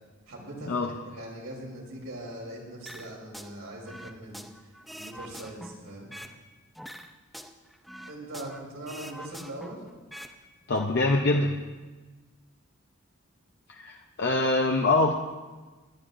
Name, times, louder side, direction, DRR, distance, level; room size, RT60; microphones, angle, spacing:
voice 1, 0.3-6.1 8.1-9.8, right 1 dB, 85° right, -3 dB, 3.4 m, -41 dB
sound 1, 2.9-3.5 3.8-6.4 6.7-8.6 8.9-10.3 10.6-10.8, equal, ahead, 0.5 m, -44 dB
voice 2, 10.7-11.6 13.7-15.1, left 2 dB, 55° left, 2 dB, 0.7 m, -24 dB
22.5 x 10.0 x 2.6 m, 1.3 s
head